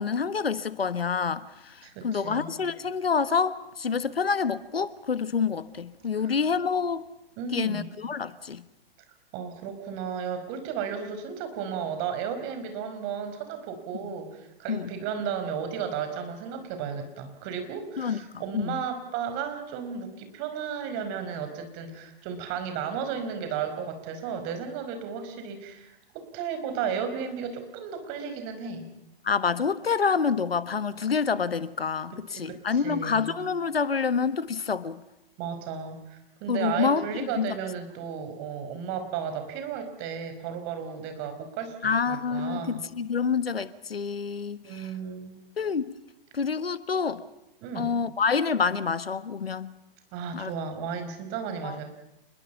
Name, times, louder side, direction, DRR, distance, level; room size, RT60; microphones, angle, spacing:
voice 1, 0.0-7.1 7.5-8.6 14.7-14.9 18.0-18.2 18.5-18.8 29.2-35.0 36.5-37.5 41.8-44.9 45.6-45.9 46.3-47.2 47.7-49.7 50.3-50.5 51.6-51.8, left 5 dB, 85° left, 1.4 m, -27 dB
voice 2, 1.8-2.5 6.2-6.3 7.4-7.9 9.3-28.9 32.1-33.3 35.4-42.8 44.6-45.4 47.6-47.9 50.1-51.8, right 7 dB, 40° right, 5.1 m, -34 dB
28.0 x 22.0 x 5.8 m
figure-of-eight pair, 115°, 29 cm